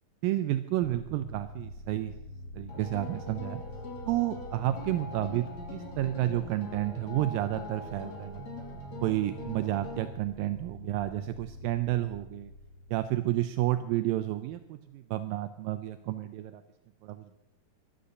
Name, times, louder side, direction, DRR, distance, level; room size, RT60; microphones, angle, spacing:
voice 1, 0.2-2.1 2.5-3.6 4.0-8.5 9.0-12.5 12.9-16.6 17.0-17.4, right 14 dB, 80° right, 10 dB, 2.2 m, -31 dB
sound 1, 0.8-14.2, left 1 dB, 80° left, 1.2 m, -46 dB
sound 2, 2.7-10.1, left 2 dB, 50° left, 3.9 m, -42 dB
14.0 x 12.0 x 6.8 m, 0.97 s
omnidirectional pair, 4.2 m